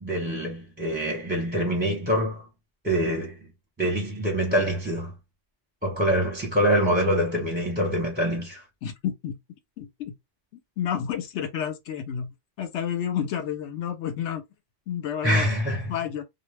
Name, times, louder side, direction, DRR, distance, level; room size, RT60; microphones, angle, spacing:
voice 1, 0.0-2.4 2.8-3.4 3.8-5.1 5.8-8.6 15.2-15.9, equal, 10° right, 0.7 m, -25 dB
voice 2, 8.8-9.4 9.8-10.1 10.8-12.3 12.6-14.4 14.9-15.5 15.9-16.2, left 9 dB, 70° left, 0.9 m, -30 dB
2.3 x 2.1 x 3.1 m
omnidirectional pair, 1.3 m